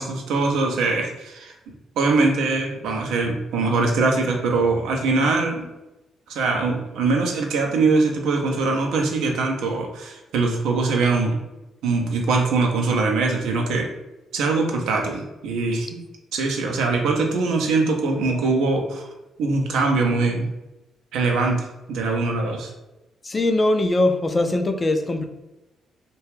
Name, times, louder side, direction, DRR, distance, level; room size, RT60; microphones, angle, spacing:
voice 1, 0.0-1.5 2.0-5.7 6.3-11.4 11.8-13.9 14.3-16.0 16.3-19.1 19.4-20.5 21.1-22.7, right 3 dB, 65° right, 2 dB, 0.4 m, -22 dB
voice 2, 23.2-25.3, left 2 dB, 30° left, 6 dB, 0.3 m, -21 dB
2.3 x 2.2 x 3.2 m, 1.0 s
figure-of-eight pair, 40°, 0 cm